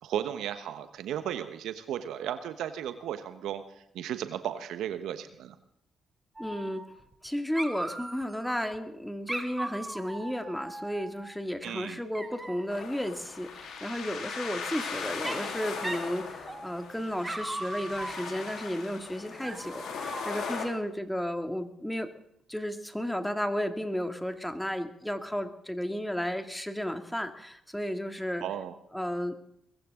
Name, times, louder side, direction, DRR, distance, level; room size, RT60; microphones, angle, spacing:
voice 1, 0.0-3.6 3.9-5.6 11.6-12.0 28.4-28.7, right 10 dB, 75° right, 10 dB, 1.2 m, -35 dB
voice 2, 6.4-6.8 7.2-22.1 22.5-28.5 28.9-29.3, equal, 5° left, 7 dB, 2.3 m, -33 dB
Dog, 6.4-7.3 7.6-8.8 9.3-11.4 12.1-12.8 14.2-14.9 15.2-15.6 15.8-16.1 16.5-16.9 17.2-18.7 19.4-20.7, right 2 dB, 20° right, 2.5 m, -39 dB
sound 1, 12.7-20.7, left 5 dB, 70° left, 3.6 m, -39 dB
22.5 x 15.0 x 3.8 m, 0.75 s
hypercardioid pair, 50°, 0 cm